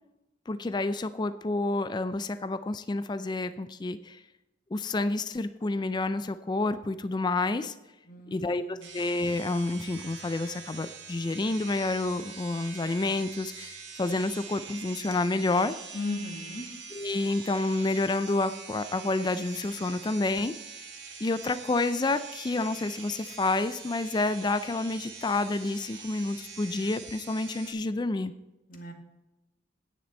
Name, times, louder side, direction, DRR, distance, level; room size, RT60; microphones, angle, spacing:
voice 1, 0.5-4.2 4.7-7.8 8.3-15.8 16.9-20.5 21.2-28.3, left 2 dB, 25° left, 12 dB, 0.4 m, -29 dB
voice 2, 8.1-8.9 15.9-16.7 28.7-28.9, left 2 dB, 50° left, 3 dB, 1.9 m, -37 dB
sound 1, 8.8-27.7, right 5 dB, 85° right, 2.2 m, -44 dB
10.0 x 9.6 x 4.3 m, 1.0 s
head